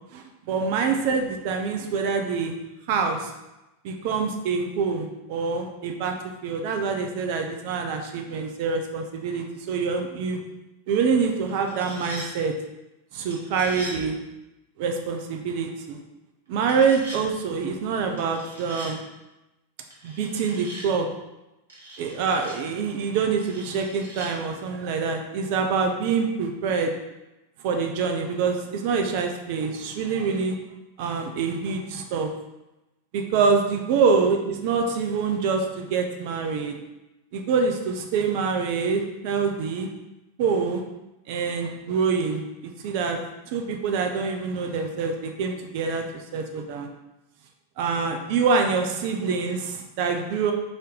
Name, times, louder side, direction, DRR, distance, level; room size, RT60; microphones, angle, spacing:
voice 1, 0.1-2.5 2.9-3.3 3.8-6.1 6.4-10.4 10.9-12.5 13.1-14.2 14.8-16.0 16.5-19.0 20.0-21.1 22.0-26.9 27.6-30.6 31.0-32.3 33.1-36.8 37.3-39.9 40.4-40.8 41.3-43.2 43.5-46.0 46.3-46.9 47.8-50.5, right 5 dB, 45° right, 3 dB, 0.4 m, -25 dB
sound 1, 11.5-12.3 13.3-14.0 16.6-17.2 18.2-18.9 19.9-20.9 21.7-22.6 23.4-24.3, right 1 dB, 70° right, 1.0 m, -41 dB
3.8 x 2.7 x 3.3 m, 0.97 s
figure-of-eight pair, 90°, 0 cm